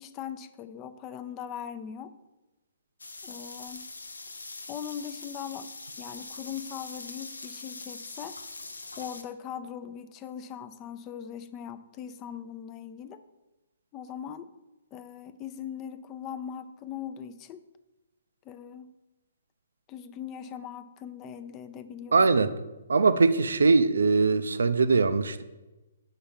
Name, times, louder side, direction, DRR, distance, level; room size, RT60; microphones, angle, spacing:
voice 1, 0.0-2.1 3.2-3.9 4.7-5.7 6.0-8.4 9.0-13.2 13.9-14.5 14.9-17.6 18.5-18.9 19.9-22.2, left 8 dB, 25° left, 12 dB, 0.4 m, -40 dB
sound 1, 3.0-9.2, left 3 dB, 85° left, 0.6 m, -42 dB
voice 2, 22.1-22.5 22.9-25.4, right 4 dB, 75° right, 12 dB, 0.4 m, -21 dB
5.7 x 4.3 x 5.1 m, 1.1 s
figure-of-eight pair, 130°, 0 cm